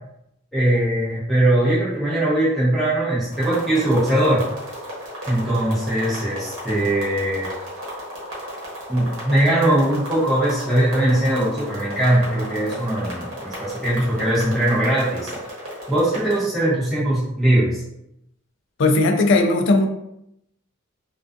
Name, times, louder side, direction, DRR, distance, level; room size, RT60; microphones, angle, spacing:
voice 1, 0.5-4.4 5.3-7.5 8.9-15.3 15.9-17.8, right 1 dB, ahead, -10 dB, 0.7 m, -20 dB
sound 1, 3.3-16.4, equal, 75° right, 0.9 m, -35 dB
voice 2, 18.8-19.9, left 2 dB, 55° left, 5 dB, 0.3 m, -17 dB
2.3 x 2.3 x 2.5 m, 0.81 s
head